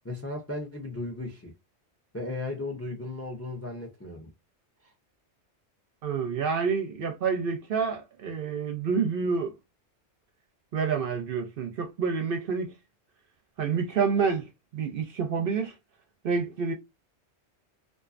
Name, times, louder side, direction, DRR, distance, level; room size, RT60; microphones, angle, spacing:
voice 1, 0.0-1.5 2.1-4.3 4.8-4.9, left 2 dB, 25° left, 0.3 m, -36 dB
voice 2, 6.0-9.6 10.7-12.7 13.6-15.7 16.2-16.7, right 5 dB, 60° right, 0.6 m, -28 dB
2.5 x 2.3 x 2.4 m
omnidirectional pair, 1.2 m